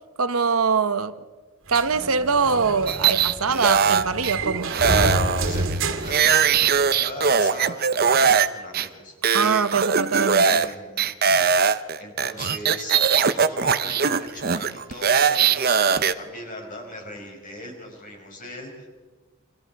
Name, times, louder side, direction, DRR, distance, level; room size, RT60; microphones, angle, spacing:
voice 1, 0.2-1.1 1.7-4.7 9.3-10.5, right 5 dB, 75° right, 1.0 m, -23 dB
sound 1, 1.7-7.0, right 2 dB, 60° right, 2.4 m, -28 dB
sound 2, 2.9-4.3 4.7-8.5 8.7-8.9 9.2-10.7 11.0-16.1, right 6 dB, 45° right, 0.7 m, -20 dB
voice 2, 4.9-9.2 10.4-18.9, left 1 dB, 35° left, 6.1 m, -39 dB
28.0 x 26.0 x 4.7 m
head